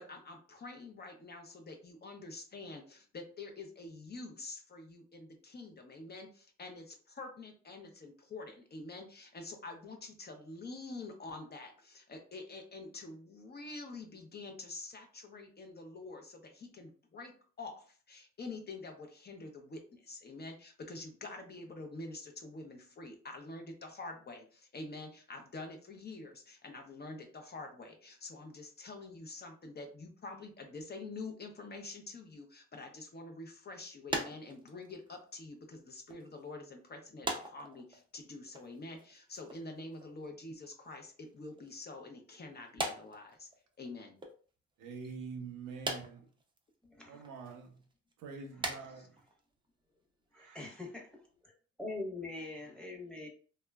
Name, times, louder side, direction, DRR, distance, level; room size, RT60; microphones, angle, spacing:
voice 1, 0.0-43.5 43.8-44.2 49.0-49.1, left 3 dB, 35° left, 0.6 m, -47 dB
sound 1, 34.1-35.8 36.1-36.4 37.2-38.2 38.5-39.6 39.9-40.3 41.2-41.8 42.7-43.9 44.2-44.3 45.8-46.6 47.2-47.3 47.8-48.1 48.5-48.9 49.2-49.4 49.6-49.9 50.6-50.7 51.0-51.1 51.3-51.4, right 2 dB, 15° right, 0.5 m, -40 dB
voice 2, 44.8-46.3 47.1-47.8 48.2-49.2 50.3-50.7, right 5 dB, 90° right, 0.7 m, -46 dB
voice 3, 46.9-47.2 50.3-51.5 51.8-53.3, left 2 dB, 5° left, 0.9 m, -43 dB
2.9 x 2.3 x 2.2 m
cardioid pair, 90°, 30 cm